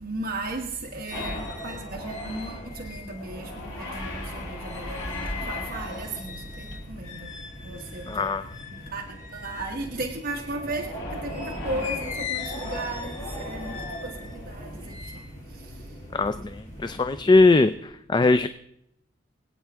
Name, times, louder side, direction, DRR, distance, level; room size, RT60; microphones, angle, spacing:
voice 1, 0.0-7.2 7.7-8.2 8.9-9.0 9.3-10.9 11.2-13.1 13.4-13.7 14.0-14.1 14.6-14.7, right 2 dB, 50° right, 1.4 m, -35 dB
sound 1, 0.5-10.7 11.2-16.7 17.1-17.7, left 7 dB, 40° left, 1.9 m, -42 dB
sound 2, 1.1-17.4, equal, 70° left, 5.0 m, -38 dB
voice 2, 8.1-8.4 16.1-18.5, left 3 dB, 25° left, 0.4 m, -20 dB
24.5 x 8.8 x 3.5 m
head